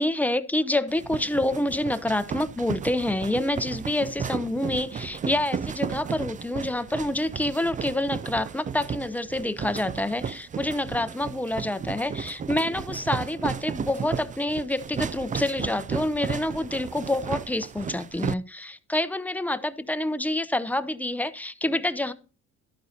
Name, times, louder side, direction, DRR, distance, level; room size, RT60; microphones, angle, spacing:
voice 1, 0.0-22.1, left 1 dB, 5° left, 12 dB, 0.7 m, -27 dB
sound 1, 0.9-18.3, right 7 dB, 25° right, 0.3 m, -34 dB
12.0 x 9.3 x 2.8 m, 0.36 s
cardioid pair, 90°, 30 cm